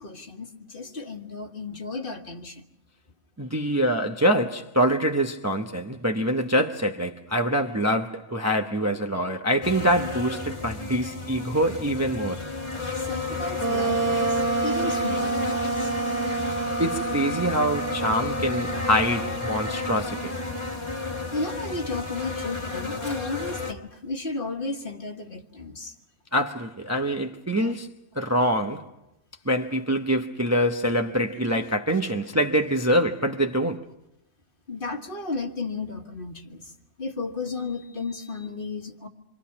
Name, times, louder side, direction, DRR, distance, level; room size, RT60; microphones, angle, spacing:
voice 1, 0.0-2.6 13.0-15.9 21.3-25.9 27.6-27.7 34.7-36.7 37.0-39.1, left 3 dB, 45° left, 1.8 m, -34 dB
voice 2, 3.4-12.4 16.8-20.4 26.3-27.9 28.1-28.9 29.5-33.9, equal, 15° right, 0.8 m, -25 dB
sound 1, 9.6-23.7, left 3 dB, 25° left, 1.7 m, -32 dB
Wind instrument woodwind instrument, 13.6-21.0, right 4 dB, 80° right, 1.5 m, -29 dB
27.5 x 26.0 x 5.9 m
omnidirectional pair, 1.3 m